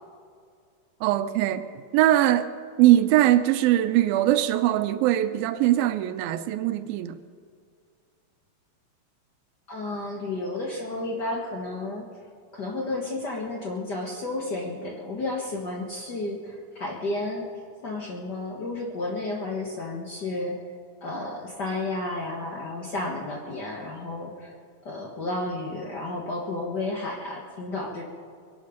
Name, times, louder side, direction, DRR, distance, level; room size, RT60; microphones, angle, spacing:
voice 1, 1.0-1.7 1.9-2.5 2.8-7.2, right 13 dB, 80° right, 2.3 m, -21 dB
voice 2, 9.7-12.0 12.5-17.5 17.8-20.6 21.0-24.5 24.8-28.0, left 2 dB, 85° left, 0.9 m, -32 dB
23.5 x 11.5 x 5.1 m
omnidirectional pair, 4.3 m